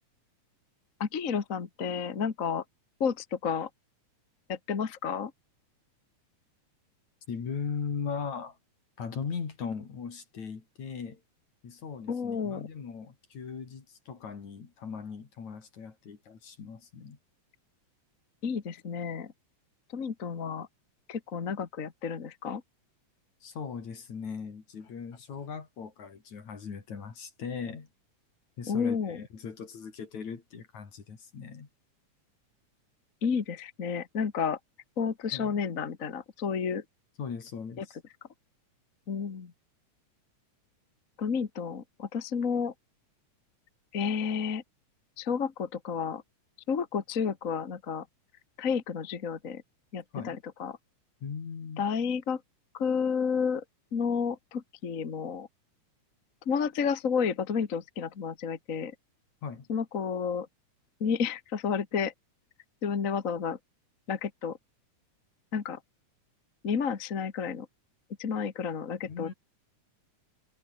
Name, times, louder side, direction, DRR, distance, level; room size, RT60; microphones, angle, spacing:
voice 1, 1.0-2.6 3.0-3.7 4.5-5.3 12.1-12.7 18.4-19.3 19.9-20.7 21.1-22.6 28.7-29.2 33.2-34.6 35.0-36.8 37.8-37.9 39.1-39.5 41.2-42.7 43.9-44.6 45.2-46.2 46.7-48.0 48.6-49.6 49.9-50.7 51.8-52.4 52.7-53.6 53.9-55.5 56.4-58.9 59.7-60.5 61.0-62.1 62.8-63.6 64.1-64.6 65.5-65.8 66.6-67.7 68.2-69.3, left 6 dB, 35° left, 1.5 m, -31 dB
voice 2, 7.3-8.6 9.0-11.2 11.6-17.2 23.4-27.9 28.6-31.7 35.3-35.6 37.2-38.0 50.1-50.4 51.2-51.9 59.4-59.7 69.0-69.3, left 6 dB, 65° left, 4.8 m, -39 dB
omnidirectional pair, 3.5 m